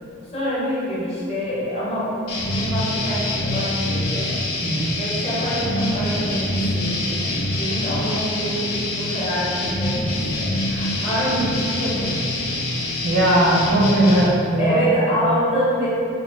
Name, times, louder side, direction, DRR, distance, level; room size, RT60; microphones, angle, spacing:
voice 1, 0.3-4.3 5.0-12.2 13.4-14.2 14.6-15.9, equal, 30° left, -8 dB, 0.6 m, -26 dB
sound 1, 2.3-14.3, left 1 dB, 80° left, 0.5 m, -25 dB
voice 2, 4.6-5.0 13.0-14.8, right 1 dB, 70° right, -5 dB, 0.6 m, -19 dB
2.4 x 2.2 x 3.2 m, 2.6 s
head